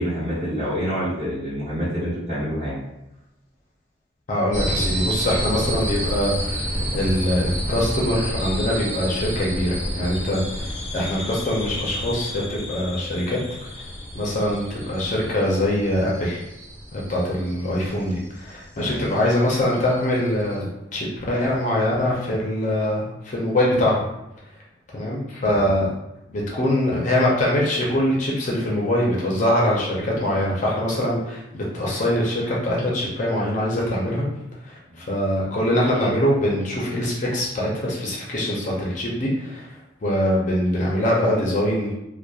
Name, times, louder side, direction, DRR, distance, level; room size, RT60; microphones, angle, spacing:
voice 1, 0.0-2.8 18.7-19.0 25.6-25.7, equal, 35° right, -11 dB, 1.4 m, -27 dB
voice 2, 4.3-13.4 13.6-13.7 14.1-16.4 16.9-24.0 24.9-25.9 26.3-34.3 34.6-39.7 40.0-41.9, left 1 dB, 40° left, -4 dB, 0.5 m, -23 dB
sound 1, 4.5-20.6, equal, 5° right, 0.8 m, -30 dB
2.7 x 2.1 x 2.3 m, 0.89 s
head